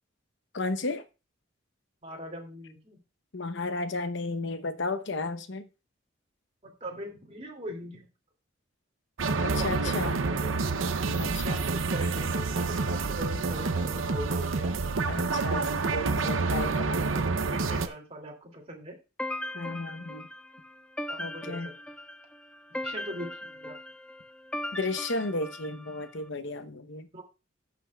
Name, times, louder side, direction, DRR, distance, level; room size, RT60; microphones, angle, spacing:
voice 1, 0.5-1.0 3.3-5.7 9.4-10.2 11.2-11.6 15.1-16.7 19.5-20.3 21.2-21.7 24.7-27.1, left 3 dB, 65° left, 0.9 m, -33 dB
voice 2, 2.0-3.0 6.6-8.1 9.3-10.7 11.4-14.7 16.4-19.0 21.1-21.7 22.8-23.7 27.1-27.3, equal, 35° right, 2.6 m, -41 dB
sound 1, 9.2-17.9, right 4 dB, 90° right, 0.7 m, -28 dB
sound 2, 19.2-26.1, left 1 dB, 5° left, 0.3 m, -39 dB
18.0 x 6.3 x 2.4 m
head